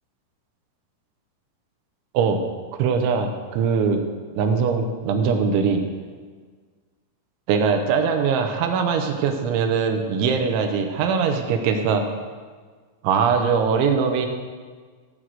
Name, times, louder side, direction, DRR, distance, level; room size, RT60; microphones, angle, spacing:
voice 1, 2.8-4.0 4.4-5.8 7.5-12.0 13.0-14.3, right 6 dB, 75° right, 5 dB, 3.2 m, -21 dB
14.5 x 4.8 x 7.6 m, 1.5 s
omnidirectional pair, 5.7 m